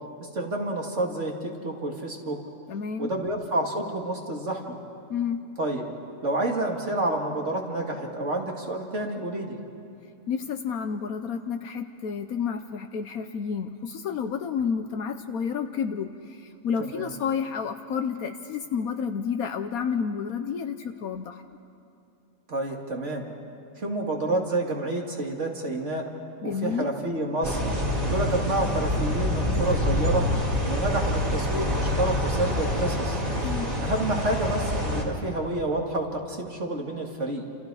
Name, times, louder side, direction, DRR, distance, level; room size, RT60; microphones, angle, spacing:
voice 1, 0.2-2.4 3.0-4.8 5.6-5.8 6.2-9.6 15.2-15.3 16.8-17.1 22.5-23.3 23.8-26.1 26.4-27.6 28.0-30.3 30.6-33.2 33.8-37.4, right 2 dB, 50° right, 0 dB, 2.6 m, -29 dB
voice 2, 2.7-3.1 5.1-5.4 10.3-21.4 26.4-26.9 33.3-33.7, left 6 dB, 75° left, 7 dB, 1.3 m, -30 dB
sound 1, 27.4-35.0, left 1 dB, 35° right, 2.9 m, -26 dB
29.0 x 28.0 x 4.9 m, 2.6 s
omnidirectional pair, 1.6 m